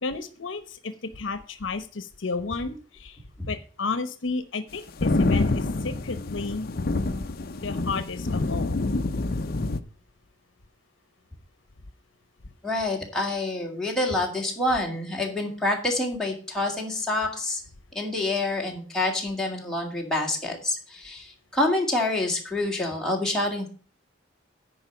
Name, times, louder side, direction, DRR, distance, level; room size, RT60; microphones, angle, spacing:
voice 1, 0.0-6.7 7.6-8.8, left 4 dB, 75° left, 12 dB, 0.9 m, -32 dB
sound 1, 4.7-9.8, left 2 dB, 50° left, 0.6 m, -27 dB
voice 2, 12.6-17.6 17.9-23.7, left 2 dB, 5° left, -2 dB, 2.3 m, -27 dB
10.0 x 4.6 x 7.2 m, 0.40 s
head